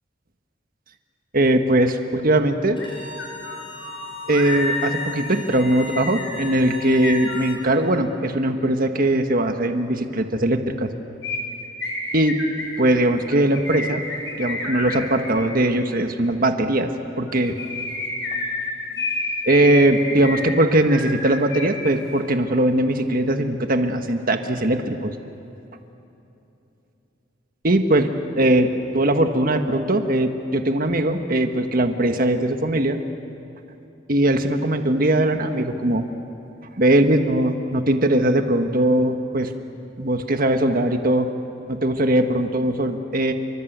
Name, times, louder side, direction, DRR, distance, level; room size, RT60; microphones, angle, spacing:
voice 1, 1.3-2.8 4.3-10.9 12.1-12.3 12.8-14.0 14.4-16.9 17.2-17.6 19.4-25.1 27.6-28.1 28.3-28.7 28.9-33.0 34.1-36.0 36.8-39.5 40.0-41.3 41.7-43.3, right 1 dB, 50° right, 6 dB, 1.5 m, -20 dB
sound 1, 2.8-2.9 3.2-7.9 11.2-15.4 17.3-21.9 22.2-22.3, left 2 dB, 70° left, 6.0 m, -30 dB
Bowed string instrument, 2.8-7.6, left 5 dB, 30° left, 5.9 m, -38 dB
29.5 x 24.5 x 8.1 m, 2.9 s
head